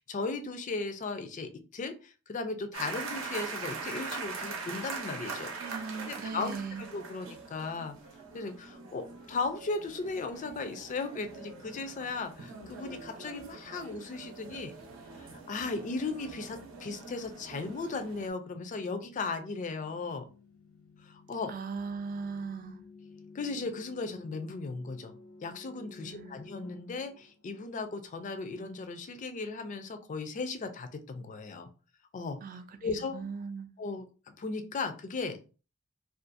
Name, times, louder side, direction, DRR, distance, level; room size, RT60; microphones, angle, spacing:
voice 1, 0.0-5.5 6.0-7.9 8.3-14.7 15.2-20.3 21.0-21.5 23.3-25.1 25.4-31.7 32.1-32.4 32.8-33.2 33.8-35.4, left 3 dB, 35° left, 0.3 m, -36 dB
sound 1, 2.7-18.3, right 4 dB, 70° right, 0.7 m, -43 dB
voice 2, 5.5-6.8 21.5-22.8 26.0-26.4 32.4-33.7, right 5 dB, 40° right, 0.3 m, -39 dB
sound 2, 15.3-28.0, left 2 dB, 90° left, 0.8 m, -54 dB
2.4 x 2.3 x 2.5 m
head